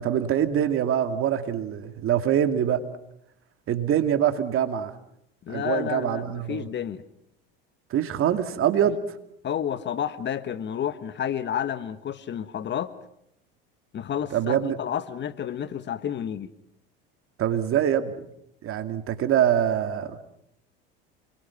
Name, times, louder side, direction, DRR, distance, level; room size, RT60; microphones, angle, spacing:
voice 1, 0.0-2.8 3.7-4.9 5.5-6.7 7.9-9.0 14.3-14.8 17.4-18.2 18.6-20.2, right 10 dB, 45° right, 9 dB, 2.4 m, -24 dB
voice 2, 5.4-7.0 9.4-12.9 13.9-16.5, left 9 dB, 40° left, 13 dB, 1.4 m, -30 dB
29.0 x 22.5 x 6.0 m, 0.76 s
hypercardioid pair, 85°, 29 cm